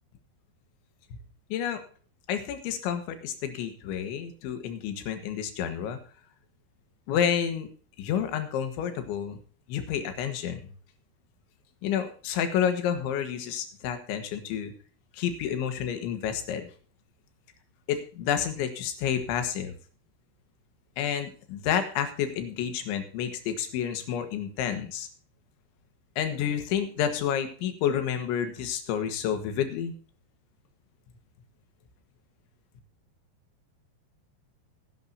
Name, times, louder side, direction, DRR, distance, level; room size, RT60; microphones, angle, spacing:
voice 1, 2.3-6.0 7.1-7.7 8.0-9.4 9.7-10.6 11.8-14.7 15.1-16.6 17.9-19.7 21.0-25.1 26.2-30.0, left 9 dB, 80° left, 7 dB, 3.8 m, -29 dB
18.0 x 10.5 x 2.8 m, 0.42 s
omnidirectional pair, 5.4 m